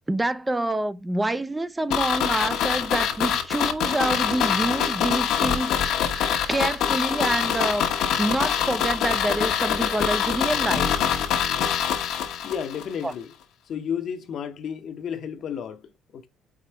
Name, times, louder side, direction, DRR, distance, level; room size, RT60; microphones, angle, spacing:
voice 1, 0.1-5.7 6.1-7.9 8.2-11.0 13.0-13.1, right 2 dB, 10° right, 0.4 m, -27 dB
sound 1, 1.9-12.8 13.1-13.2, left 8 dB, 75° left, 1.2 m, -24 dB
voice 2, 12.4-13.3 13.7-16.3, left 8 dB, 50° left, 0.9 m, -32 dB
5.0 x 4.7 x 4.3 m
cardioid pair, 135°, 0 cm